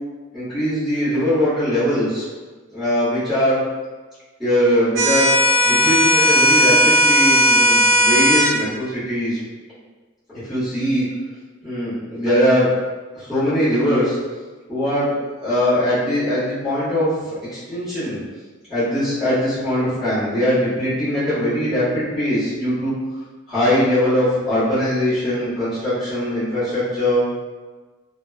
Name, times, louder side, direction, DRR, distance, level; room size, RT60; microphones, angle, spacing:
voice 1, 0.3-2.3 2.7-3.6 4.4-5.3 5.6-9.4 10.3-11.0 11.6-12.7 13.1-14.2 14.7-15.1 15.4-18.2 18.7-22.9 23.5-27.2, equal, ahead, -16 dB, 1.2 m, -21 dB
sound 1, 5.0-8.5, equal, 70° right, 0.5 m, -15 dB
2.9 x 2.2 x 2.2 m, 1.3 s
head